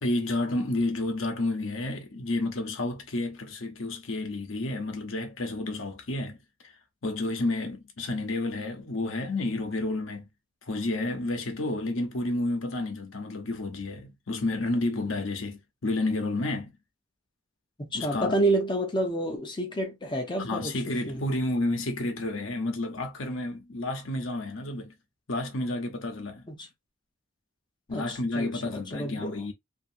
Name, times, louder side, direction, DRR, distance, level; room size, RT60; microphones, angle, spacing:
voice 1, 0.0-6.4 7.0-10.3 10.7-16.7 17.9-18.3 20.4-24.9 25.3-26.4 27.9-29.5, left 2 dB, 75° left, 0.9 m, -30 dB
voice 2, 17.8-20.8 21.1-21.2 26.5-26.7 27.9-29.4, right 1 dB, 25° left, 0.7 m, -29 dB
2.8 x 2.6 x 2.5 m
head